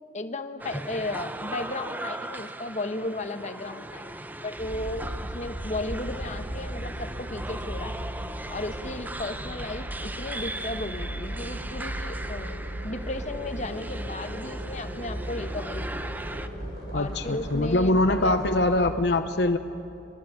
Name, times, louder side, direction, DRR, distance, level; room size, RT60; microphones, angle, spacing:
voice 1, 0.1-5.0 5.3-7.9 8.5-12.6 12.8-16.0 16.9-18.4 18.6-18.8, left 2 dB, 40° left, 7 dB, 1.1 m, -35 dB
sound 1, 0.6-16.5, right 1 dB, 10° right, 0.7 m, -39 dB
sound 2, 4.6-18.9, equal, 55° right, 7.1 m, -36 dB
voice 2, 16.9-19.6, left 2 dB, 65° left, 8 dB, 0.8 m, -23 dB
22.5 x 22.0 x 7.7 m, 2.7 s
head